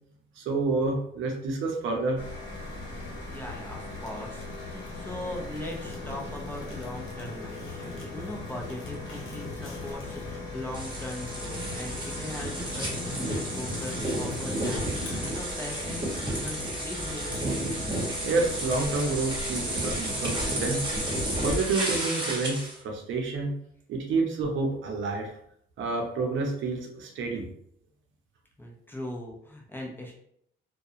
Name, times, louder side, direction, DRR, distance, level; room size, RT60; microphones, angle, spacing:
voice 1, 0.4-2.2 18.2-21.0 21.4-23.5 23.9-25.3 25.8-27.5, right 3 dB, 75° right, 2 dB, 0.6 m, -29 dB
sound 1, 2.2-21.3, left 2 dB, 60° left, 0.9 m, -40 dB
Fire, 2.5-17.6, left 2 dB, 90° left, 0.8 m, -42 dB
voice 2, 3.3-17.4 28.6-30.2, left 1 dB, 10° left, -1 dB, 0.6 m, -40 dB
sound 2, 10.7-22.8, right 1 dB, 25° right, 1.1 m, -32 dB
2.3 x 2.2 x 2.7 m, 0.70 s
cardioid pair, 90°, 20 cm